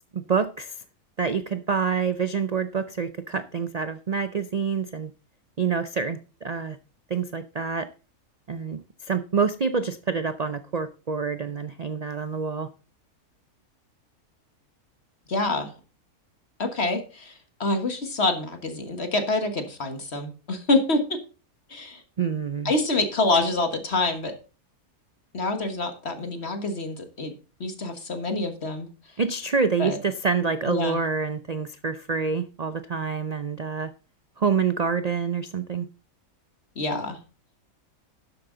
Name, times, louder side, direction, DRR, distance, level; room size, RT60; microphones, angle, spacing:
voice 1, 0.1-0.8 1.2-5.1 5.6-6.8 7.1-7.9 8.5-12.7 22.2-22.7 29.2-33.9 34.4-35.9, right 5 dB, 85° right, 0.3 m, -27 dB
voice 2, 15.3-15.7 16.6-21.2 21.7-22.0 22.6-24.3 25.3-27.3 27.6-28.9 29.8-30.0 30.7-31.0 36.7-37.2, left 2 dB, 45° left, 1.7 m, -26 dB
12.5 x 7.7 x 3.8 m
omnidirectional pair, 1.6 m